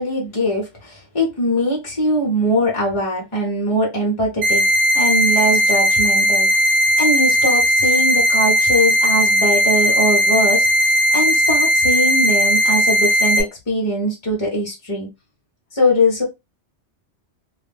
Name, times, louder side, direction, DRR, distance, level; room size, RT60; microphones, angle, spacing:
voice 1, 0.0-4.7 4.9-6.7 7.0-15.1 15.7-16.2, equal, 35° left, 0.6 m, -21 dB
sound 1, 4.4-13.4, equal, 50° right, 0.8 m, -16 dB
2.3 x 2.0 x 3.2 m
omnidirectional pair, 1.1 m